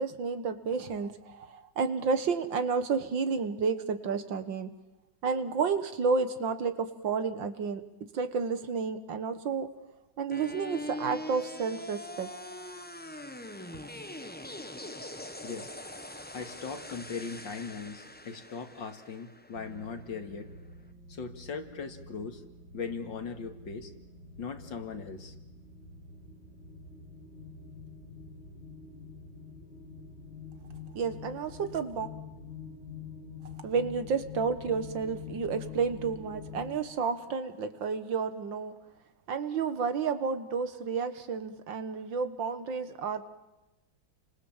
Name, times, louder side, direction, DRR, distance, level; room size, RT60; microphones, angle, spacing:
voice 1, 0.0-4.8 5.2-7.9 8.1-9.7 10.2-12.3 30.9-32.1 33.6-38.7 39.3-43.2, right 5 dB, 75° right, 10 dB, 2.2 m, -31 dB
sound 1, 10.3-20.3, left 1 dB, 10° left, 0.7 m, -43 dB
voice 2, 15.4-15.7 16.3-20.5 21.1-22.4 22.7-23.9 24.4-25.3, left 5 dB, 70° left, 6 dB, 2.8 m, -39 dB
sound 2, 19.5-36.8, left 5 dB, 30° left, 6.3 m, -46 dB
30.0 x 26.0 x 7.4 m, 1.0 s
omnidirectional pair, 2.1 m